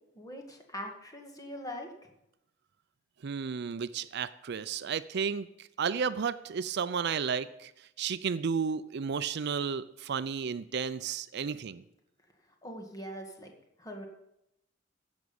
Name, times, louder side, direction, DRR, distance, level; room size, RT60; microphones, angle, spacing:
voice 1, 0.1-2.1 12.6-13.5 13.8-14.1, equal, 20° left, 2 dB, 1.9 m, -42 dB
voice 2, 3.2-7.7 8.0-11.8, right 6 dB, 60° right, 15 dB, 0.4 m, -33 dB
16.0 x 6.1 x 7.0 m, 0.85 s
head